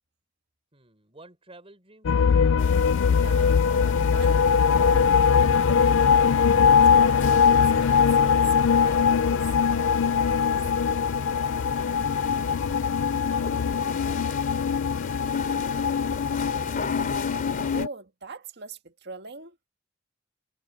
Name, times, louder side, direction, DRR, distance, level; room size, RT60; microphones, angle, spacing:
voice 1, 0.7-2.4 11.3-12.7 13.2-16.9, right 2 dB, 30° right, 6.5 m, -54 dB
sound 1, 2.0-17.9, left 6 dB, 75° left, 0.4 m, -21 dB
sound 2, 2.6-17.9, left 3 dB, 45° left, 3.4 m, -37 dB
voice 2, 3.1-6.3 6.9-10.6 17.5-19.6, right 4 dB, 55° right, 1.8 m, -42 dB
head